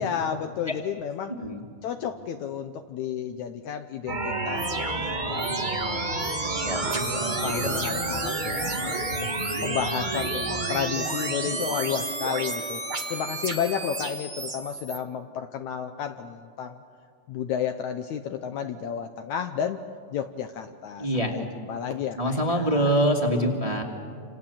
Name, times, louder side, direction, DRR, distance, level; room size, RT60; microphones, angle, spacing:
voice 1, 0.0-1.3 1.8-6.4 6.8-7.1 7.4-9.3 9.6-12.8 13.1-16.8 17.3-19.8 20.1-22.9, left 8 dB, 70° left, 7 dB, 1.9 m, -32 dB
sound 1, 4.1-15.0, right 2 dB, 35° right, 0.7 m, -29 dB
voice 2, 6.6-7.8 21.0-21.4 22.2-23.8, equal, 10° right, 1 dB, 1.9 m, -25 dB
28.5 x 27.5 x 7.2 m, 2.2 s
omnidirectional pair, 3.9 m